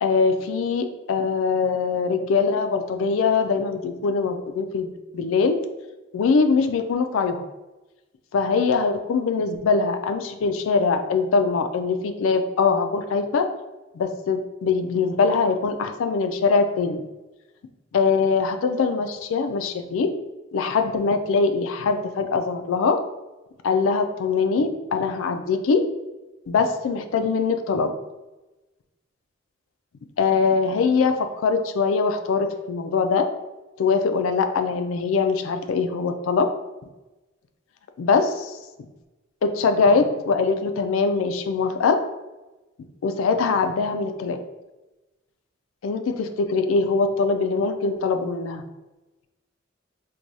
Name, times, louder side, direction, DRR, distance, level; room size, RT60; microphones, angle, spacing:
voice 1, 0.0-5.6 6.1-7.4 8.3-13.5 13.9-17.0 17.9-20.1 20.5-23.0 23.6-25.8 26.5-27.9 30.2-33.3 33.8-36.5 38.0-38.5 38.8-38.9 39.4-42.0 43.0-44.4 45.8-48.6, left 4 dB, 80° left, 7 dB, 0.4 m, -22 dB
4.6 x 2.2 x 2.6 m, 1.1 s
head